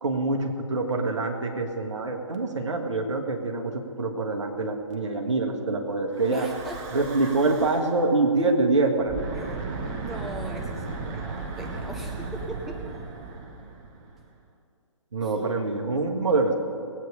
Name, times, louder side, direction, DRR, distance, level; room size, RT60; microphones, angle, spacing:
voice 1, 0.0-3.7 4.0-6.5 6.9-9.2 9.4-9.5 15.1-16.5, right 3 dB, 60° right, 3 dB, 1.7 m, -25 dB
Breathing / Wind, 6.1-8.1 8.9-14.3, right 4 dB, 30° right, 1.3 m, -36 dB
voice 2, 6.3-7.4 9.3-13.0 15.2-15.6, right 1 dB, ahead, 1 dB, 0.5 m, -40 dB
19.5 x 8.7 x 5.2 m, 2.4 s
figure-of-eight pair, 130°, 17 cm